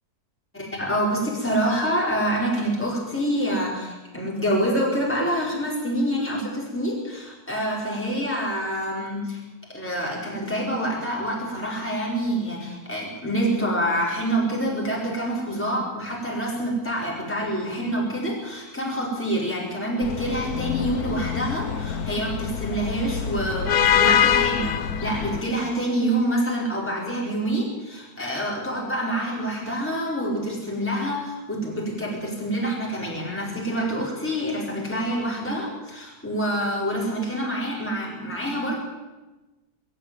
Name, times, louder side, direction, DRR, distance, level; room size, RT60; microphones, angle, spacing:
voice 1, 0.5-9.4 9.7-38.8, right 1 dB, 5° left, -3 dB, 4.8 m, -27 dB
sound 1, 20.0-25.4, left 8 dB, 75° left, 1.4 m, -24 dB
23.5 x 13.5 x 9.1 m, 1.1 s
omnidirectional pair, 1.7 m